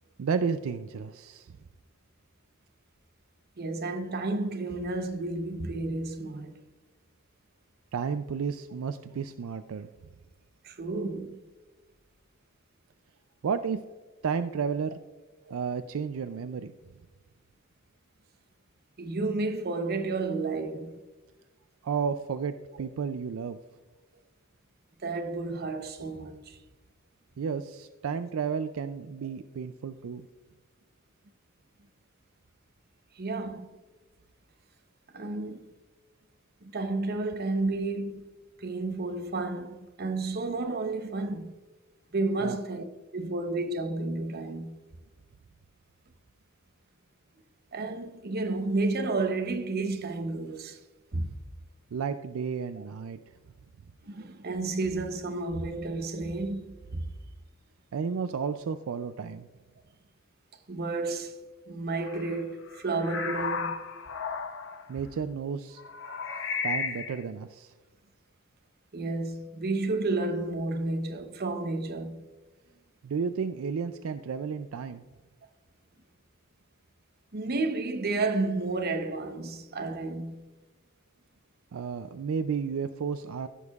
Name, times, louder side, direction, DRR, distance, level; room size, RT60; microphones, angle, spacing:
voice 1, 0.2-1.5 7.9-9.9 13.4-13.8 14.2-15.0 15.5-16.7 21.8-23.6 27.4-30.3 42.4-42.6 51.9-53.2 57.9-59.5 64.9-65.8 66.6-67.7 73.0-75.0 81.7-83.5, right 6 dB, 75° right, 0.4 m, -32 dB
voice 2, 3.6-6.6 10.6-11.4 15.5-15.6 19.0-21.0 25.0-26.6 33.2-33.7 35.1-35.7 36.6-38.2 38.6-41.6 42.1-42.8 43.1-44.8 47.7-50.8 51.1-51.4 52.8-52.9 54.0-57.0 60.7-63.8 68.9-72.3 77.3-80.4, right 3 dB, 50° right, 0.8 m, -31 dB
sound 1, 62.0-62.4 62.7-64.9 65.8-67.2, left 5 dB, 65° left, 0.8 m, -34 dB
15.5 x 6.3 x 2.4 m
head